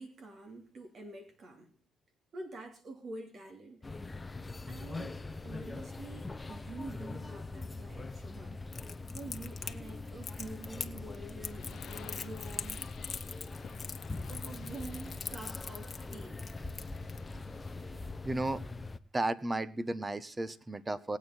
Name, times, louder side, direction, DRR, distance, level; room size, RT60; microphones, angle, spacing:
voice 1, 0.0-1.7 2.3-3.9 4.6-8.6 9.1-12.9 14.2-16.4, right 2 dB, 55° right, 2.9 m, -47 dB
sound 1, 3.8-19.0, left 3 dB, 20° left, 0.8 m, -42 dB
Crackle, 8.7-17.2, left 6 dB, 40° left, 1.3 m, -43 dB
sound 2, 11.4-18.1, left 9 dB, 60° left, 0.7 m, -54 dB
voice 2, 18.2-18.6 19.1-21.2, right 2 dB, 20° right, 1.1 m, -34 dB
19.5 x 8.7 x 4.4 m
cardioid pair, 90°, 0 cm